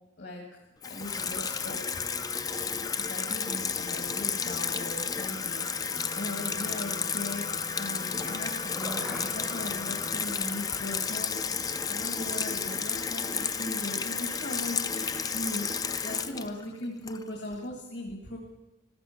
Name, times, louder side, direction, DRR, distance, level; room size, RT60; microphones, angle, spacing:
voice 1, 0.0-2.0 3.0-18.4, left 1 dB, 60° left, 1 dB, 1.9 m, -39 dB
Water tap faucet / Sink (filling or washing), 0.8-17.5, left 6 dB, 20° left, 0.4 m, -32 dB
Wind instrument woodwind instrument, 5.9-10.3, left 3 dB, 45° left, 1.1 m, -44 dB
sound 1, 8.1-14.1 14.4-14.5, equal, 5° right, 0.7 m, -47 dB
15.5 x 13.5 x 5.8 m, 1.0 s
head